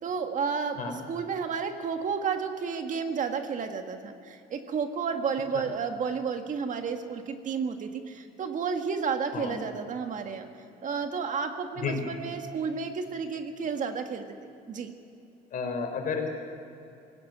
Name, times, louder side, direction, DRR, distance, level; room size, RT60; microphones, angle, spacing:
voice 1, 0.0-10.5 10.8-14.2 14.7-14.9, right 6 dB, 50° right, 6 dB, 1.8 m, -31 dB
voice 2, 15.5-16.3, left 5 dB, 55° left, 4 dB, 4.6 m, -31 dB
18.5 x 17.0 x 9.2 m, 2.7 s
cardioid pair, 110°, 17 cm